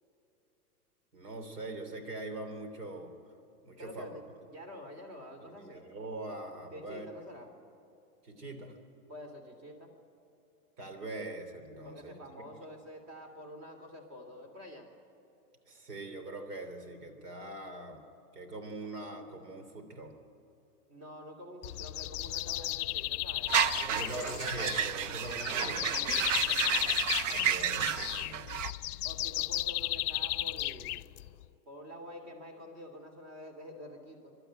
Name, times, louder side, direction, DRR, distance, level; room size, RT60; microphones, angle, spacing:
voice 1, 1.1-3.1 3.6-4.2 5.4-7.1 8.2-8.8 10.8-12.2 15.7-18.0 18.3-20.1 23.9-25.9 27.3-28.9, right 2 dB, 90° right, 6 dB, 3.4 m, -42 dB
voice 2, 3.8-4.2 4.5-5.9 6.7-7.5 9.1-9.9 11.8-14.9 20.9-24.4 25.6-26.9 29.0-31.0 31.7-34.3, equal, 35° right, 5 dB, 3.1 m, -48 dB
sound 1, 21.6-31.5, left 16 dB, 75° left, 0.5 m, -34 dB
sound 2, 23.5-28.7, right 8 dB, 55° right, 0.6 m, -31 dB
23.5 x 12.0 x 9.0 m, 2.8 s
supercardioid pair, 170°, 46 cm